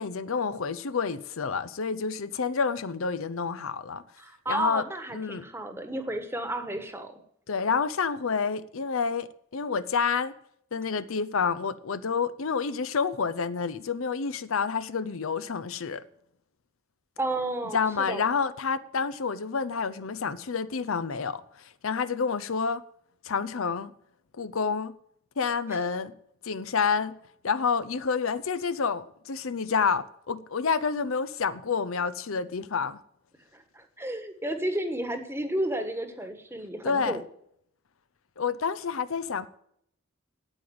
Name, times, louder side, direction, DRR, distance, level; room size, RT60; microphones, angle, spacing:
voice 1, 0.0-4.0 4.5-4.8 5.1-5.4 7.5-10.3 10.7-16.0 17.7-22.8 23.2-23.9 24.4-24.9 25.4-26.1 26.4-27.2 27.4-33.0 36.8-37.2 38.4-39.5, left 5 dB, 75° left, 0.6 m, -29 dB
voice 2, 4.2-7.2 17.2-18.2 25.7-25.8 33.5-37.2, right 1 dB, 10° right, 1.2 m, -32 dB
8.9 x 8.8 x 7.8 m
head